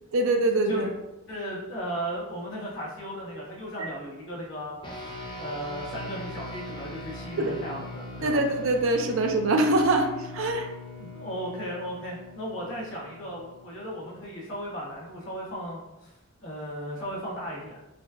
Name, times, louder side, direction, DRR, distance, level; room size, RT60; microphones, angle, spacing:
voice 1, 0.1-0.9 7.4-7.5 8.2-10.1 10.3-10.7, right 2 dB, 70° right, 3 dB, 0.5 m, -23 dB
voice 2, 1.3-4.8 5.4-8.4 11.1-16.1 16.4-17.8, equal, 60° left, -6 dB, 1.2 m, -36 dB
sound 1, 4.8-14.5, left 2 dB, 20° left, 0.6 m, -41 dB
4.0 x 2.3 x 3.5 m, 1.0 s
head